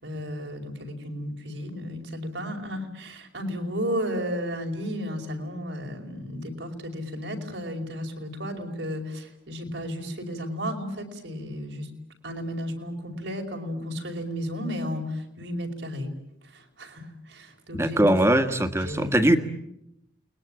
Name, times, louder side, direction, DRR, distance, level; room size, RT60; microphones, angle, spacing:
voice 1, 0.0-11.9 12.2-16.1 16.5-18.0 18.8-19.2, equal, 80° right, 3 dB, 5.3 m, -33 dB
voice 2, 17.7-19.4, right 1 dB, 15° right, 8 dB, 1.7 m, -21 dB
30.0 x 21.5 x 8.9 m, 0.80 s
head